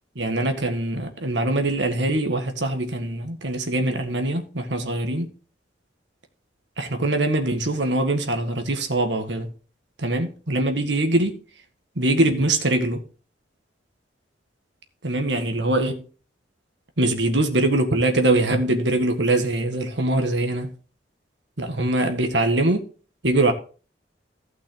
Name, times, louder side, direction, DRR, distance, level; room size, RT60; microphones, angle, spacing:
voice 1, 0.1-5.3 6.8-9.5 10.0-11.4 11.9-13.0 15.0-16.0 17.0-20.7 21.6-22.8 23.2-23.5, right 2 dB, 75° right, 1.8 m, -23 dB
15.0 x 6.0 x 3.9 m
head